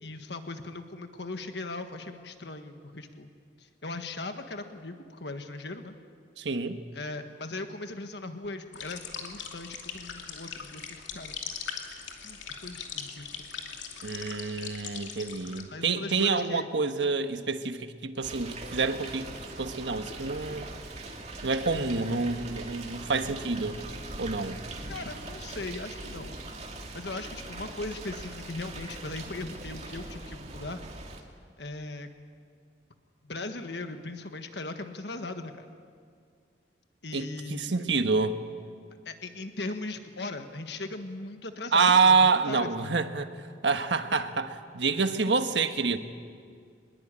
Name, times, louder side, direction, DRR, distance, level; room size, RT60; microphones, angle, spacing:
voice 1, 0.0-3.3 3.6-5.9 6.9-11.3 12.2-13.5 15.7-16.7 24.9-26.4 26.6-30.8 31.6-32.1 33.2-35.7 37.0-37.6 39.0-43.0, left 2 dB, 65° left, 7 dB, 1.5 m, -39 dB
voice 2, 6.4-6.8 14.0-19.3 19.6-20.7 21.4-23.8 24.2-24.6 37.1-38.4 41.7-43.3 43.6-46.0, right 4 dB, 75° right, 8 dB, 1.4 m, -27 dB
sound 1, 8.7-15.6, left 6 dB, 85° left, 2.8 m, -40 dB
sound 2, 18.2-31.2, right 2 dB, 35° right, 2.5 m, -41 dB
24.0 x 21.5 x 8.9 m, 2.2 s
head